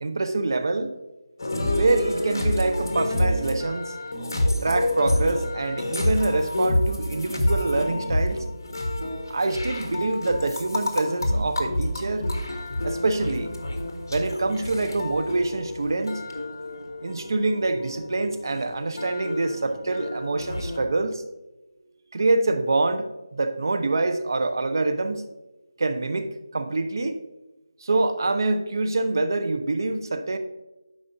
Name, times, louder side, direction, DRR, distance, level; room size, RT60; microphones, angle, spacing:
voice 1, 0.0-0.9 1.7-3.9 4.6-8.4 9.3-12.3 12.8-13.5 14.1-16.2 17.0-21.2 22.1-23.1 23.3-25.2 25.8-27.2 27.8-30.4, right 2 dB, 55° right, 9 dB, 0.9 m, -25 dB
sound 1, 1.4-20.8, left 1 dB, 50° left, 1.5 m, -28 dB
12.0 x 5.1 x 2.7 m, 1.1 s
figure-of-eight pair, 165°, 2 cm